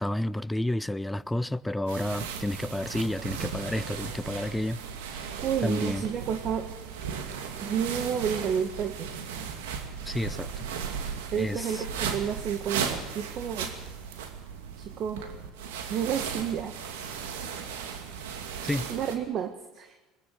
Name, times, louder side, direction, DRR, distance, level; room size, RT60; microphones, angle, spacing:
voice 1, 0.0-4.8 5.1-5.3 5.6-6.0 10.1-10.6 11.4-11.8 18.6-18.8, left 1 dB, 5° left, 0.6 m, -30 dB
sound 1, 1.9-19.2, right 7 dB, 80° right, 2.4 m, -36 dB
voice 2, 5.4-6.7 7.6-9.1 11.3-13.7 14.8-15.3 15.9-16.8 18.9-20.0, right 8 dB, 50° right, 1.5 m, -30 dB
21.0 x 20.0 x 6.5 m
hypercardioid pair, 80°, 0 cm